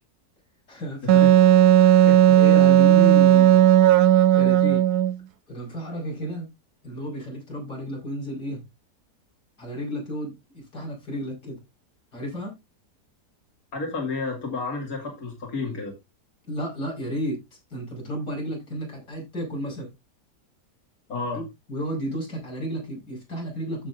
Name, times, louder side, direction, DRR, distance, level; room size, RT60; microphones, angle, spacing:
voice 1, 0.7-1.3 1.8-3.7 4.3-4.8 5.5-6.5 6.8-8.6 9.6-11.6 12.1-12.6 16.4-19.9 21.3-23.9, equal, 85° left, -3 dB, 5.9 m, -33 dB
Wind instrument woodwind instrument, 1.1-5.2, right 11 dB, 75° right, 1.2 m, -15 dB
voice 2, 2.1-2.4 13.7-15.9 21.1-21.4, left 3 dB, 60° left, 1 dB, 3.0 m, -31 dB
15.0 x 6.3 x 2.6 m, 0.22 s
omnidirectional pair, 1.7 m